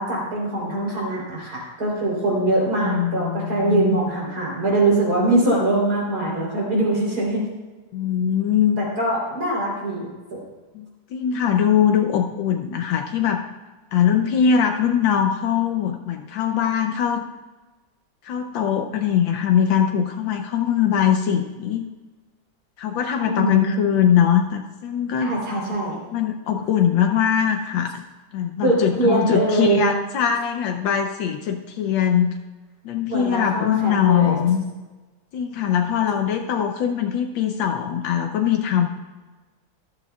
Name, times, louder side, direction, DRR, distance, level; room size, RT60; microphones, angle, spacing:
voice 1, 0.0-7.5 8.8-10.4 23.2-23.7 25.2-26.0 28.6-29.9 33.1-34.4, right 2 dB, 55° right, -3 dB, 4.0 m, -22 dB
voice 2, 2.8-4.0 7.9-8.8 10.7-13.4 13.9-17.2 18.2-21.8 22.8-25.3 26.1-28.0 28.3-32.3 32.8-34.6 35.3-38.9, left 8 dB, 80° left, 4 dB, 1.4 m, -21 dB
13.5 x 12.0 x 2.3 m, 1.2 s
omnidirectional pair, 2.1 m